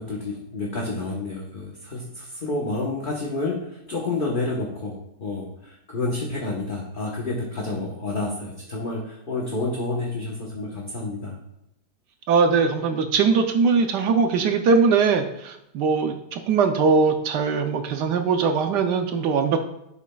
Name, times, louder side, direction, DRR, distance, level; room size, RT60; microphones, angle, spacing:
voice 1, 0.0-11.4, left 2 dB, 35° left, -2 dB, 1.0 m, -29 dB
voice 2, 12.3-19.6, right 5 dB, 75° right, 6 dB, 1.2 m, -21 dB
11.0 x 7.2 x 2.3 m, 0.82 s
omnidirectional pair, 1.9 m